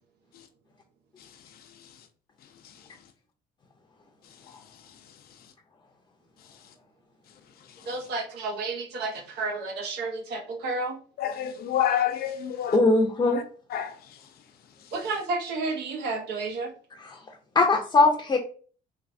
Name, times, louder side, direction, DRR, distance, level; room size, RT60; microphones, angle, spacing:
voice 1, 7.9-11.0 14.9-16.7, right 3 dB, 75° right, 1.0 m, -31 dB
voice 2, 11.2-12.8 13.2-13.4 13.7-13.9, left 10 dB, 65° left, 0.6 m, -27 dB
voice 3, 12.7-13.4 17.5-18.4, left 3 dB, 25° left, 0.6 m, -20 dB
3.2 x 3.2 x 2.6 m
cardioid pair, 110°, 17 cm